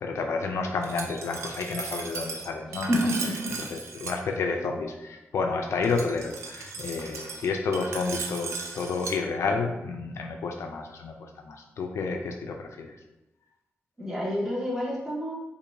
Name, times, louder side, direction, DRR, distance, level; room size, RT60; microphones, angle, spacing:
voice 1, 0.0-2.9 3.6-13.0, left 4 dB, 80° left, 3 dB, 0.4 m, -30 dB
Glass, 0.8-4.2 5.8-9.2, right 4 dB, 90° right, 0.4 m, -37 dB
voice 2, 2.9-3.5 14.0-15.3, equal, 5° right, -5 dB, 1.4 m, -28 dB
4.6 x 2.5 x 2.6 m, 0.95 s
cardioid pair, 60°, 5 cm